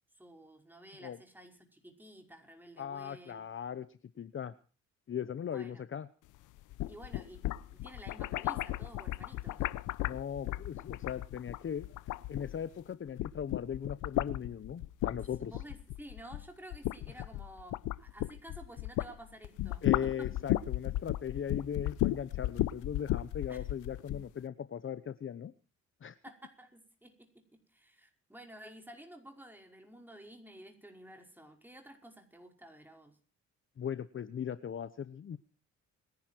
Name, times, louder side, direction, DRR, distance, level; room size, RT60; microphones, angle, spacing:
voice 1, 0.2-3.4 5.4-5.8 6.9-9.7 15.4-20.3 23.5-23.6 26.2-33.2, right 1 dB, 5° right, 3 dB, 5.3 m, -52 dB
voice 2, 2.8-4.5 5.1-6.1 10.0-15.5 19.8-25.5 26.0-26.2 33.8-35.4, left 8 dB, 40° left, 14 dB, 0.9 m, -39 dB
sound 1, 6.6-12.8 13.1-19.1 19.4-24.3, left 15 dB, 90° left, 0.8 m, -35 dB
27.5 x 11.0 x 4.5 m, 0.38 s
cardioid pair, 90°, 30 cm